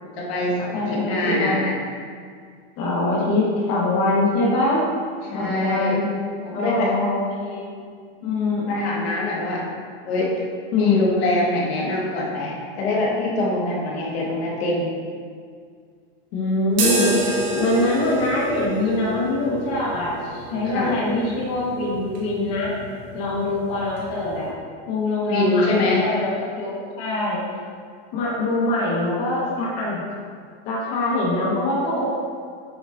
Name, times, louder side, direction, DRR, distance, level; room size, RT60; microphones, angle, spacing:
voice 1, 0.0-1.7 5.2-6.0 6.4-7.0 8.7-9.7 10.0-10.4 10.7-14.9 20.6-21.0 25.3-26.1, left 2 dB, 80° left, -3 dB, 1.8 m, -24 dB
voice 2, 0.7-1.7 2.8-4.8 5.3-6.1 6.5-7.8 8.2-9.0 10.7-11.1 16.3-22.7 23.1-24.5 24.9-27.4 28.1-30.1 30.6-32.1, left 2 dB, 40° left, -5 dB, 1.4 m, -23 dB
sound 1, 16.7-24.5, right 3 dB, 45° right, 1.1 m, -30 dB
8.2 x 6.0 x 2.6 m, 2.1 s
supercardioid pair, 175°, 31 cm